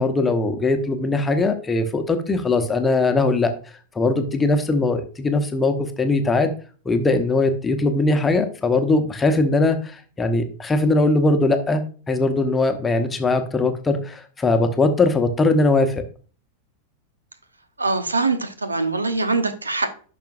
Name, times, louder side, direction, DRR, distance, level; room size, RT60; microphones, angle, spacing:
voice 1, 0.0-3.5 3.9-6.5 6.8-16.0, left 2 dB, 15° left, 7 dB, 1.0 m, -20 dB
voice 2, 17.8-19.9, right 3 dB, 80° right, 10 dB, 1.0 m, -23 dB
10.5 x 6.0 x 2.5 m, 0.39 s
figure-of-eight pair, 90°, 0 cm